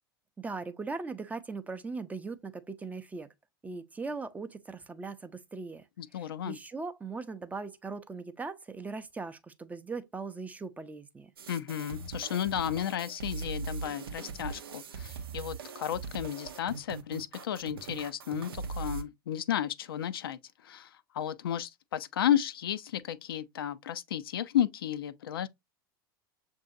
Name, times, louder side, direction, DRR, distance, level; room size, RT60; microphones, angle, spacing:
voice 1, 0.4-3.3 3.6-5.9 6.1-11.3, right 4 dB, 10° right, 0.5 m, -39 dB
voice 2, 6.0-6.6 11.5-20.9 21.1-25.5, left 10 dB, 75° left, 0.4 m, -33 dB
sound 1, 11.4-19.0, right 5 dB, 80° right, 0.5 m, -40 dB
6.7 x 2.6 x 2.5 m
hypercardioid pair, 85°, 12 cm